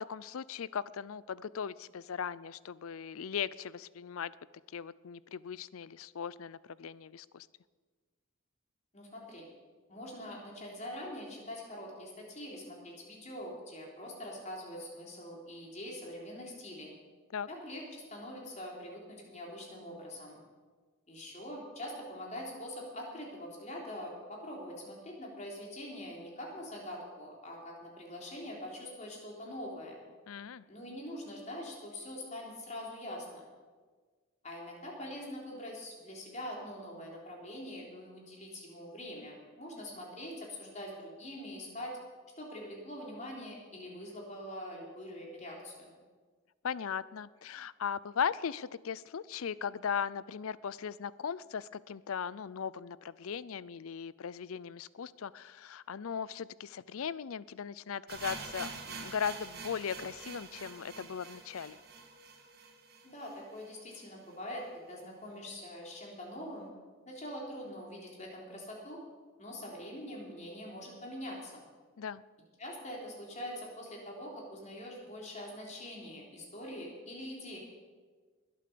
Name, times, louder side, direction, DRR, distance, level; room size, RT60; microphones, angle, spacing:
voice 1, 0.0-4.3 4.7-7.5 17.3-17.5 30.3-30.6 46.6-61.8 72.0-72.2, left 7 dB, 75° left, 19 dB, 0.5 m, -38 dB
voice 2, 8.9-9.4 9.9-16.9 17.5-20.4 21.1-30.0 30.7-33.4 34.4-41.9 42.4-45.9 63.0-64.6 64.9-66.7 67.1-69.0 69.4-71.7 72.6-77.6, left 1 dB, 30° left, -2 dB, 3.5 m, -44 dB
sound 1, 58.1-64.0 64.3-64.4 64.6-64.7 65.3-65.4, right 4 dB, 45° right, 1.8 m, -46 dB
21.0 x 8.6 x 6.9 m, 1.5 s
head